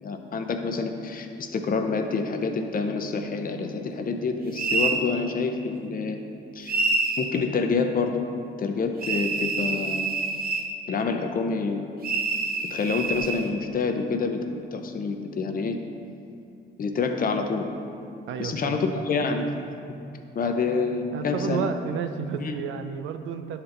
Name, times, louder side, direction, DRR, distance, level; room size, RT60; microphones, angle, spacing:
voice 1, 0.0-6.2 6.5-6.9 7.2-8.2 8.6-10.1 10.9-11.9 12.7-15.8 16.8-17.7 18.4-19.5 20.3-21.7 22.4-22.5, left 4 dB, 45° left, 5 dB, 0.7 m, -27 dB
sound 1, 4.6-5.0 6.7-7.3 9.0-10.7 12.0-13.4, right 3 dB, 50° right, 0.8 m, -26 dB
voice 2, 18.3-18.8 21.1-23.6, right 7 dB, 80° right, 8 dB, 0.5 m, -31 dB
10.5 x 4.4 x 3.8 m, 2.6 s
cardioid pair, 90°, 20 cm